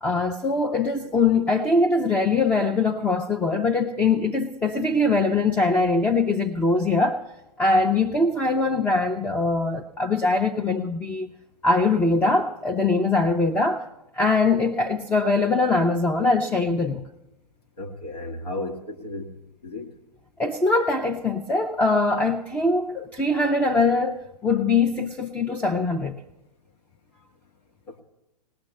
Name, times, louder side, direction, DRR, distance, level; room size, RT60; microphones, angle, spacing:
voice 1, 0.0-7.2 7.6-11.3 11.6-13.8 14.2-17.0 20.4-26.2, left 3 dB, 10° left, 4 dB, 0.5 m, -22 dB
voice 2, 17.8-19.3 19.6-19.9 27.9-28.0, left 2 dB, 80° left, 2 dB, 2.0 m, -34 dB
20.0 x 18.5 x 3.2 m, 0.93 s
figure-of-eight pair, 115°, 21 cm